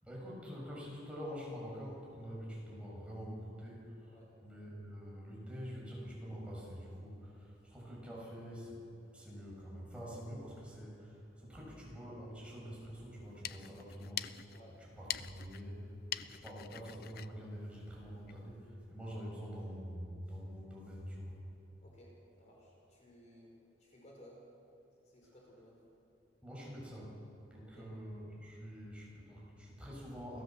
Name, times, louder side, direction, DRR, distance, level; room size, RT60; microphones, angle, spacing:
voice 1, 0.0-8.8 9.1-14.5 14.8-15.9 16.1-21.4 26.4-27.2 27.5-30.4, equal, 5° right, -5 dB, 7.4 m, -46 dB
sound 1, 13.1-18.5, left 11 dB, 55° left, 0.6 m, -45 dB
voice 2, 14.5-14.8 21.8-24.4 25.0-25.8 27.6-27.9, equal, 40° left, -2 dB, 4.9 m, -59 dB
29.0 x 16.5 x 7.7 m, 2.7 s
head